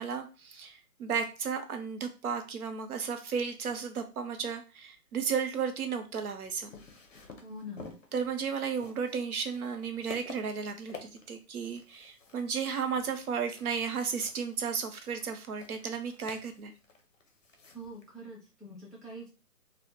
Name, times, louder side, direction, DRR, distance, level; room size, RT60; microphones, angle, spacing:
voice 1, 0.0-6.7 8.1-16.7, right 6 dB, 65° right, 7 dB, 0.6 m, -34 dB
sound 1, 6.1-18.1, left 4 dB, 55° left, 0.6 m, -51 dB
voice 2, 7.4-8.0 17.7-19.3, equal, ahead, -6 dB, 0.4 m, -44 dB
2.1 x 2.0 x 2.9 m, 0.32 s
hypercardioid pair, 170°, 48 cm